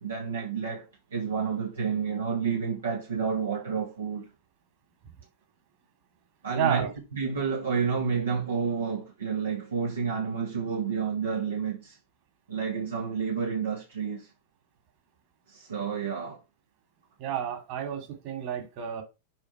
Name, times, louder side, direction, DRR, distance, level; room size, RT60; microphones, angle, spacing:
voice 1, 0.0-4.3 6.4-12.0 12.5-14.3 15.5-16.4, right 6 dB, 70° right, 1.7 m, -30 dB
voice 2, 6.6-6.9 17.2-19.0, right 9 dB, 45° right, 2.7 m, -30 dB
7.0 x 5.1 x 4.6 m
figure-of-eight pair, 90°, 0 cm